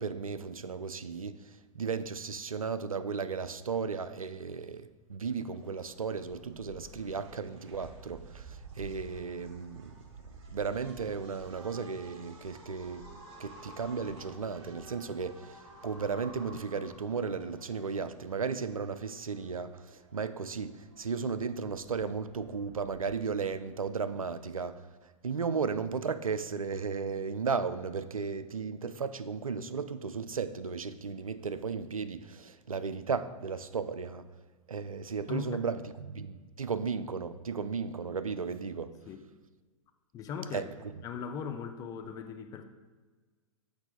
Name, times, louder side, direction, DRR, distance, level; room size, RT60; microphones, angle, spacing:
voice 1, 0.0-10.0 10.5-13.1 13.4-24.8 25.2-34.2 34.7-38.9 40.5-40.6, right 5 dB, 85° right, 12 dB, 0.4 m, -35 dB
sound 1, 5.5-24.5, right 4 dB, 50° right, 1.1 m, -54 dB
sound 2, 11.9-17.3, left 1 dB, ahead, 1.5 m, -53 dB
voice 2, 35.3-35.6 39.1-39.2 40.1-40.7 41.0-42.6, left 6 dB, 20° left, 7 dB, 0.4 m, -39 dB
6.7 x 4.8 x 3.9 m, 1.4 s
figure-of-eight pair, 105°, 17 cm